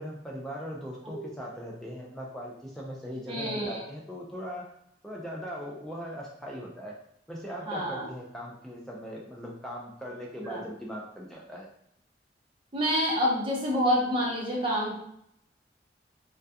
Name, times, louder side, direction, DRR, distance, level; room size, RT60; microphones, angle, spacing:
voice 1, 0.0-4.7 5.0-7.0 7.3-11.7, equal, 5° left, -3 dB, 0.3 m, -39 dB
voice 2, 3.3-3.8 7.7-8.1 10.4-10.6 12.7-14.9, equal, 30° right, -4 dB, 0.7 m, -28 dB
2.3 x 2.2 x 2.6 m, 0.73 s
head